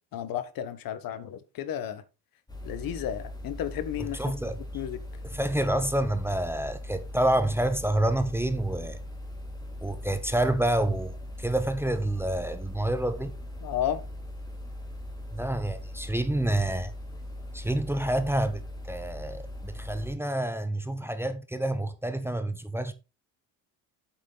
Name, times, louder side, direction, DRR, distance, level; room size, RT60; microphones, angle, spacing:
voice 1, 0.1-2.0 2.6-4.2 4.7-5.0 13.6-14.0, left 10 dB, 65° left, 1.3 m, -32 dB
sound 1, 2.5-20.1, left 1 dB, 10° left, 2.7 m, -40 dB
voice 2, 4.1-4.6 5.2-9.0 9.8-13.4 15.3-16.9 17.5-22.9, right 1 dB, 5° right, 0.8 m, -28 dB
8.3 x 6.2 x 4.0 m
cardioid pair, 110°, 38 cm